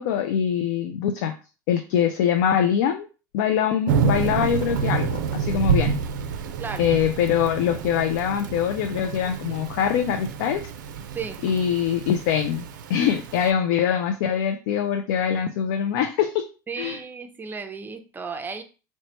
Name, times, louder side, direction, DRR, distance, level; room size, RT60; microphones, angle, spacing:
voice 1, 0.0-1.3 1.7-3.1 3.3-6.0 6.8-10.6 11.4-16.4 16.8-17.0, left 8 dB, 70° left, 6 dB, 0.3 m, -23 dB
Thunder / Rain, 3.9-13.5, right 6 dB, 80° right, 0.4 m, -28 dB
voice 2, 16.7-18.6, right 5 dB, 20° right, 7 dB, 0.5 m, -34 dB
3.0 x 2.1 x 2.8 m, 0.33 s
hypercardioid pair, 85°, 10 cm